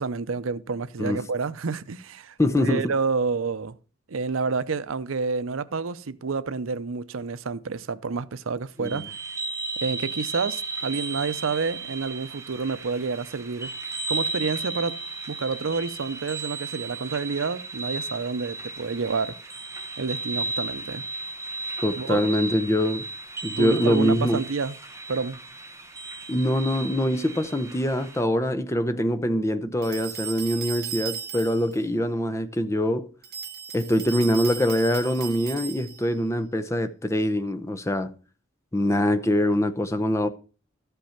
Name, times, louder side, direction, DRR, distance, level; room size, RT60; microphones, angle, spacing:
voice 1, 0.0-3.8 4.1-9.1 9.8-13.7 14.1-15.0 15.3-19.4 20.0-21.0 22.0-22.3 23.6-24.8 25.1-25.4, right 4 dB, 80° right, 0.6 m, -29 dB
voice 2, 2.4-2.9 8.8-9.1 21.8-23.0 23.4-24.4 26.3-33.1 33.7-38.1 38.7-40.3, left 1 dB, 15° left, 0.7 m, -24 dB
sound 1, 8.8-28.2, right 3 dB, 15° right, 0.9 m, -35 dB
sound 2, 29.8-31.8 33.2-36.1, right 8 dB, 50° right, 1.6 m, -36 dB
13.5 x 5.6 x 5.7 m
head